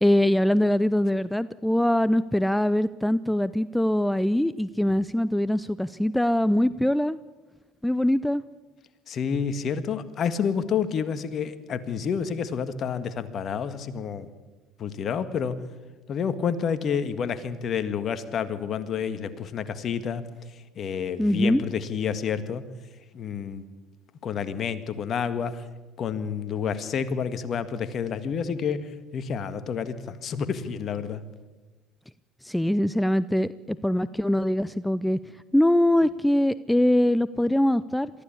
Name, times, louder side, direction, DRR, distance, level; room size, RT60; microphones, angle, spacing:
voice 1, 0.0-7.2 7.8-8.4 21.2-21.6 32.4-35.2 35.5-38.1, left 1 dB, 5° left, 16 dB, 0.6 m, -23 dB
voice 2, 9.1-14.3 14.8-15.6 16.1-20.2 20.7-22.6 23.1-23.6 24.2-25.6 26.0-31.2, left 7 dB, 50° left, 12 dB, 1.7 m, -29 dB
23.0 x 14.5 x 8.6 m, 1.2 s
hypercardioid pair, 75°, 0 cm